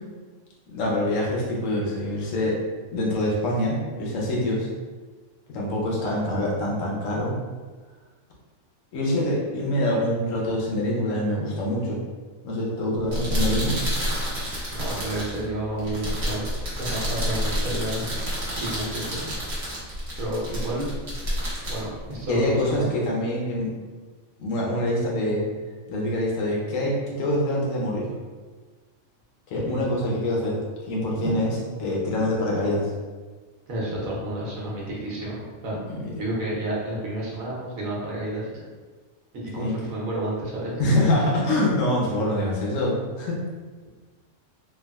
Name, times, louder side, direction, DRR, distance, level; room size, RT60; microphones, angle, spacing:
voice 1, 0.7-2.6 2.9-4.7 5.5-7.3 8.9-12.0 12.4-13.8 22.3-23.7 24.4-25.4 25.9-28.1 29.5-32.9 35.8-36.3 39.6-39.8 40.8-43.4, left 1 dB, 70° left, -3 dB, 1.1 m, -25 dB
sound 1, 12.9-22.8, equal, 50° right, 1.1 m, -29 dB
voice 2, 14.7-16.5 16.8-18.1 18.6-19.4 20.2-20.9 21.7-22.9 29.6-29.8 31.2-31.3 33.7-35.8 36.2-38.6 39.3-40.9, right 1 dB, 80° right, -5 dB, 1.2 m, -30 dB
3.4 x 2.3 x 2.2 m, 1.4 s
omnidirectional pair, 1.4 m